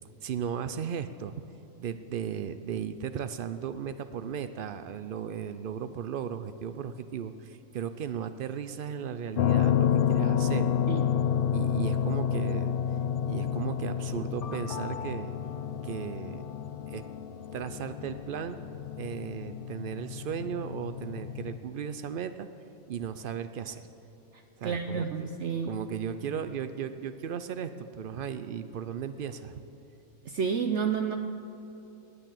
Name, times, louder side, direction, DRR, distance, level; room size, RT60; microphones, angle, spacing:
voice 1, 0.2-1.3 1.8-10.7 11.5-12.8 13.3-15.3 15.8-16.4 16.9-17.0 17.5-18.6 19.0-22.5 22.9-23.9 24.6-25.3 25.7-29.6, right 8 dB, 85° right, 11 dB, 0.4 m, -36 dB
sound 1, 9.3-21.6, left 9 dB, 75° left, 0.5 m, -30 dB
voice 2, 24.3-25.8 30.2-31.2, right 6 dB, 60° right, 6 dB, 0.9 m, -30 dB
18.5 x 9.4 x 7.6 m, 2.9 s
omnidirectional pair, 1.5 m